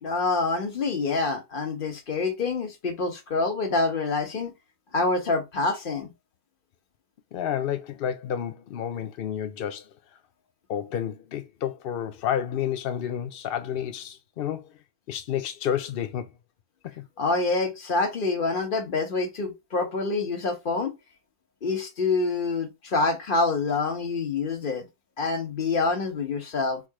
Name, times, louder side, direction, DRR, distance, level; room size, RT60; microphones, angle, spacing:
voice 1, 0.0-4.5 4.9-6.1 17.2-20.9 21.6-24.8 25.2-26.8, left 3 dB, 40° left, 1.1 m, -26 dB
voice 2, 7.3-9.9 10.7-14.7 15.1-16.3 16.8-17.1, left 9 dB, 80° left, 0.5 m, -30 dB
4.7 x 2.0 x 4.7 m
omnidirectional pair, 1.6 m